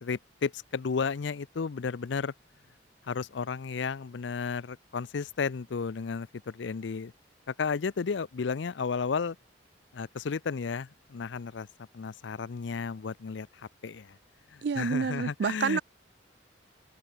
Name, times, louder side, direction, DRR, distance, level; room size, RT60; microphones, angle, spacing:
voice 1, 0.0-2.3 3.0-7.1 7.5-9.4 9.9-11.7 11.9-14.2 14.5-15.8, left 5 dB, 75° left, 0.5 m, -33 dB
voice 2, 14.6-15.8, right 6 dB, 65° right, 0.4 m, -28 dB
open air
head